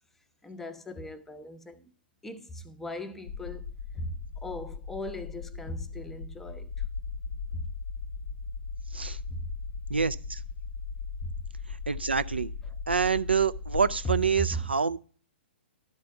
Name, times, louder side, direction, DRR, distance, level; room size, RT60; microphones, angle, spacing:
voice 1, 0.4-1.9 2.2-6.7 7.5-7.7 9.3-9.5 11.2-11.4 14.0-14.7, right 1 dB, 5° left, 0.6 m, -37 dB
sound 1, 3.3-14.4, left 5 dB, 55° left, 0.7 m, -38 dB
voice 2, 9.9-10.4 11.9-12.5 12.9-15.0, right 5 dB, 75° right, 0.4 m, -26 dB
11.5 x 4.1 x 5.8 m
figure-of-eight pair, 115°, 6 cm